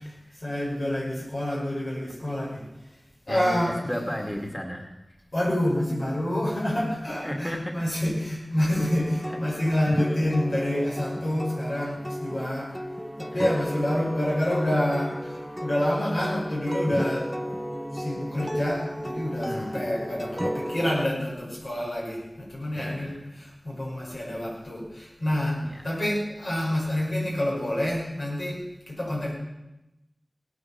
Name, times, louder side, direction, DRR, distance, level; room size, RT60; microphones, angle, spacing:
voice 1, 0.4-2.6 3.3-3.7 5.3-12.8 13.2-17.4 17.9-28.6 28.9-29.3, left 1 dB, 80° left, -3 dB, 5.7 m, -28 dB
voice 2, 3.3-5.0 7.2-7.8 9.3-9.4 13.3-13.7 19.4-19.9 20.4-20.6 22.7-23.2 25.6-25.9, equal, 15° left, 2 dB, 2.3 m, -34 dB
sound 1, 8.8-21.1, equal, ahead, 0.6 m, -33 dB
17.5 x 9.7 x 7.3 m, 0.95 s
wide cardioid pair, 45°, 0 cm